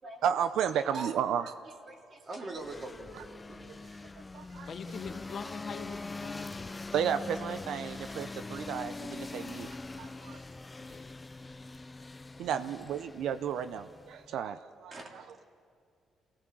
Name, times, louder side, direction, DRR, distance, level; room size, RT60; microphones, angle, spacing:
voice 1, 0.2-1.5 3.1-3.2 3.7-3.9 4.3-4.7 6.9-10.4 12.4-15.4, right 8 dB, 80° right, 0.6 m, -33 dB
voice 2, 1.8-3.7 12.3-12.5 14.9-15.1, right 2 dB, 40° right, 3.2 m, -43 dB
sound 1, 2.6-14.3, left 3 dB, 20° left, 0.6 m, -43 dB
voice 3, 4.7-6.9 10.8-11.1, left 6 dB, 55° left, 1.1 m, -43 dB
24.0 x 17.0 x 7.6 m
cardioid pair, 90°, 0 cm